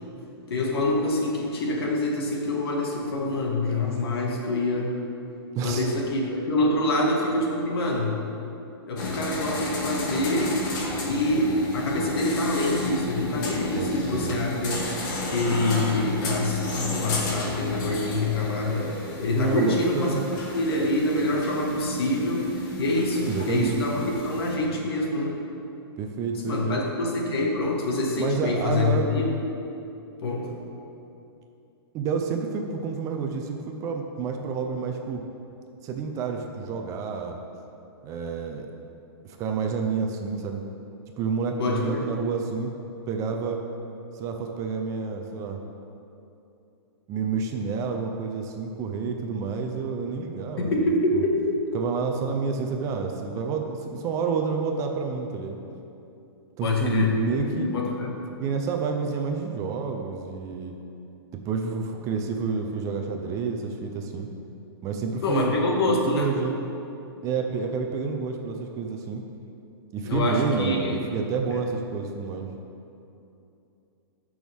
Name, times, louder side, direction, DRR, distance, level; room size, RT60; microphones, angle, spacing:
voice 1, 0.5-4.9 5.6-8.2 8.9-10.6 11.0-14.8 15.3-20.2 20.5-25.4 26.5-29.3 30.2-30.5 41.6-42.0 50.6-51.4 56.6-58.2 65.2-66.3 70.0-71.0 71.5-71.6, left 2 dB, 70° left, -1 dB, 1.9 m, -26 dB
voice 2, 5.6-5.9 13.7-14.3 19.3-20.2 23.3-23.8 26.0-26.8 28.2-29.1 31.9-35.2 35.8-37.4 38.0-38.7 39.2-40.6 41.2-42.7 43.1-43.6 44.1-45.6 47.1-50.7 51.1-51.2 51.7-55.6 56.6-57.7 58.4-60.8 61.3-64.3 64.8-65.5 65.9-66.6 67.2-69.2 69.9-72.5, right 5 dB, 25° right, 3 dB, 0.7 m, -29 dB
sound 1, 9.0-24.6, left 2 dB, 50° left, 1.9 m, -33 dB
14.5 x 6.2 x 3.6 m, 2.8 s
hypercardioid pair, 150°, 13 cm